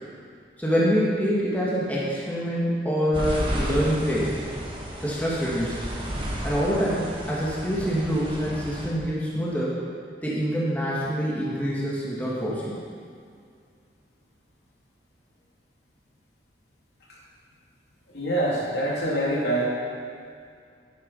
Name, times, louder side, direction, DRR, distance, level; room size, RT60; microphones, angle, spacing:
voice 1, 0.6-4.3 5.0-5.9 6.4-9.8 10.2-12.8, equal, 10° left, -7 dB, 2.2 m, -25 dB
sound 1, 3.1-8.9, equal, 30° right, 1.7 m, -32 dB
voice 2, 18.1-19.7, right 1 dB, 70° left, -5 dB, 3.0 m, -25 dB
12.5 x 9.7 x 5.6 m, 2.2 s
head